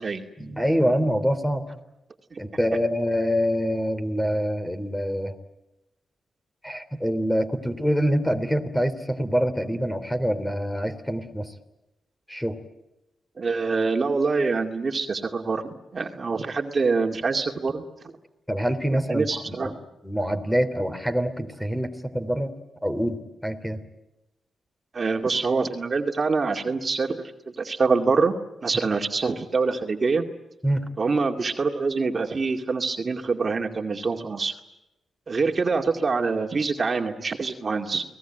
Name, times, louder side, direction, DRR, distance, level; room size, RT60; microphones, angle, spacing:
voice 1, 0.4-1.6 2.4-5.3 6.6-11.5 12.3-12.6 18.5-19.7 20.0-21.9 22.1-22.5 22.8-23.8 30.6-30.8, equal, 5° left, 9 dB, 3.2 m, -25 dB
voice 2, 13.4-17.8 19.1-19.7 24.9-27.3 27.6-28.3 28.6-30.2 31.0-34.5 35.3-38.0, right 4 dB, 40° right, 4 dB, 2.3 m, -25 dB
29.5 x 19.0 x 9.2 m, 0.94 s
cardioid pair, 75°, 0 cm